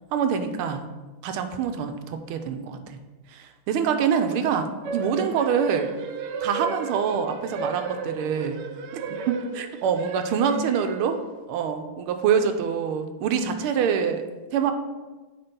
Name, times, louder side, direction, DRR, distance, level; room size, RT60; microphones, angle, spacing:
voice 1, 0.1-0.9 1.2-3.0 3.3-5.9 6.4-8.6 8.9-11.2 11.5-14.2 14.5-14.7, right 7 dB, 90° right, 7 dB, 1.5 m, -25 dB
sound 1, 4.8-11.4, right 4 dB, 70° right, 1.0 m, -34 dB
8.7 x 3.7 x 5.3 m, 1.2 s
omnidirectional pair, 2.3 m